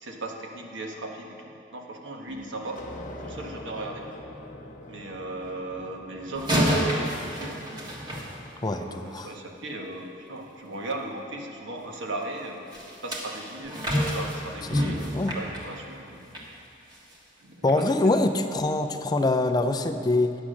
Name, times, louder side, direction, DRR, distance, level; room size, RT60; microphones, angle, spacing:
voice 1, 0.0-2.8 3.2-4.1 4.9-6.7 7.0-8.0 8.7-12.7 13.0-16.2 17.4-18.1, right 2 dB, 85° right, 1 dB, 1.2 m, -37 dB
sound 1, 2.3-8.6, left 1 dB, 45° left, 0.9 m, -44 dB
sound 2, 6.3-8.9 12.7-16.5 16.9-17.1 17.7-17.8, equal, 25° right, 1.5 m, -29 dB
voice 2, 8.6-9.3 14.7-15.3 17.6-20.3, left 2 dB, 20° left, 7 dB, 0.4 m, -24 dB
10.0 x 7.1 x 6.3 m, 2.7 s
head